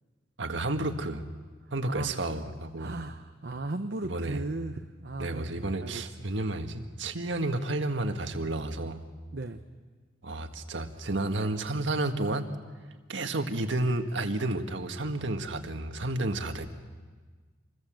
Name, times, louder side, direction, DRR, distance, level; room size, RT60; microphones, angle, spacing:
voice 1, 0.4-1.2 1.7-2.9 4.1-4.4 5.2-9.0 10.2-12.5 13.1-16.7, right 2 dB, 85° right, 6 dB, 1.7 m, -31 dB
voice 2, 1.9-2.3 2.8-6.1 9.3-9.6, right 2 dB, 65° right, 6 dB, 0.9 m, -36 dB
27.0 x 21.5 x 7.7 m, 1.4 s
head